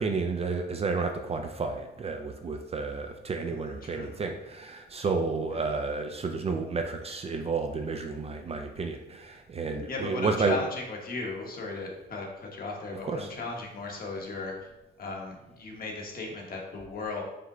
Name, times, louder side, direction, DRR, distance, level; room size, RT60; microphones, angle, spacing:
voice 1, 0.0-10.6 13.0-13.3, right 4 dB, 30° right, 5 dB, 0.4 m, -31 dB
voice 2, 3.4-4.1 5.5-5.6 9.9-14.7 15.0-17.2, left 3 dB, 45° left, 0 dB, 1.1 m, -36 dB
5.0 x 2.2 x 3.7 m, 0.97 s
cardioid pair, 90°, 20 cm